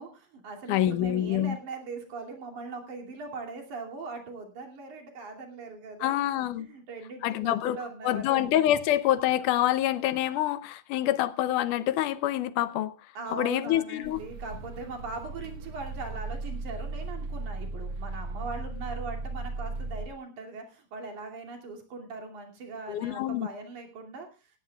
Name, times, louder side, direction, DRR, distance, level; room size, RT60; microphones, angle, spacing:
voice 1, 0.0-6.2 6.6-8.4 13.2-24.5, right 4 dB, 70° right, 4.2 m, -40 dB
voice 2, 0.7-1.6 6.0-6.7 7.2-7.8 8.0-12.9 13.3-14.2 22.9-23.5, left 12 dB, 80° left, 2.3 m, -26 dB
sound 1, 14.0-20.1, right 3 dB, 50° right, 2.2 m, -36 dB
18.0 x 15.5 x 2.3 m
omnidirectional pair, 3.6 m